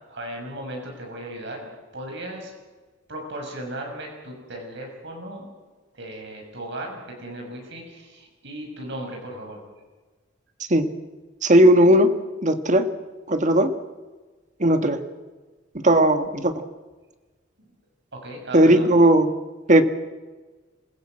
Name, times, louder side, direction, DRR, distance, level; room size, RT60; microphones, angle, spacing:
voice 1, 0.1-1.7 1.9-2.5 3.1-5.5 5.9-9.6 18.1-18.9, right 1 dB, 60° right, 1 dB, 6.4 m, -36 dB
voice 2, 11.4-12.1 12.4-12.9 13.3-13.7 14.6-15.0 15.8-16.6 18.5-19.3 19.7-19.8, right 1 dB, 40° right, 8 dB, 1.5 m, -16 dB
27.5 x 16.0 x 7.7 m, 1.3 s
head